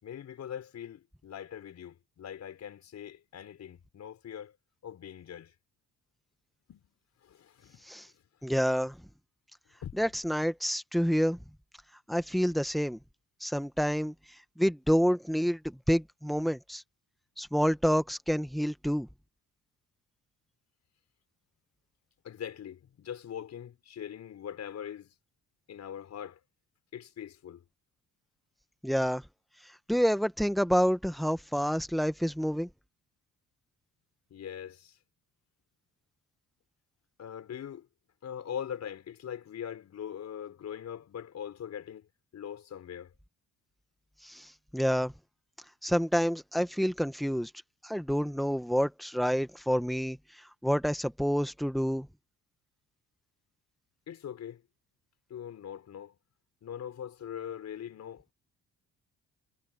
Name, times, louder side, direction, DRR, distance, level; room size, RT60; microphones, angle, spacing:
voice 1, 0.0-4.6 4.8-5.5 6.7-6.8 7.2-7.9 9.8-10.0 22.2-25.1 25.7-26.4 26.9-27.6 34.3-35.0 37.2-37.9 38.2-42.1 42.3-43.1 54.1-54.6 55.3-56.2 56.6-58.3, left 9 dB, 60° left, 5.3 m, -42 dB
voice 2, 8.4-9.0 10.0-11.4 12.1-13.0 13.4-14.1 14.6-16.8 17.4-19.1 28.8-29.2 29.9-32.7 44.2-44.4 44.7-45.1 45.8-47.5 47.8-50.2 50.6-52.1, equal, ahead, 1.5 m, -28 dB
cardioid pair, 90°, 30 cm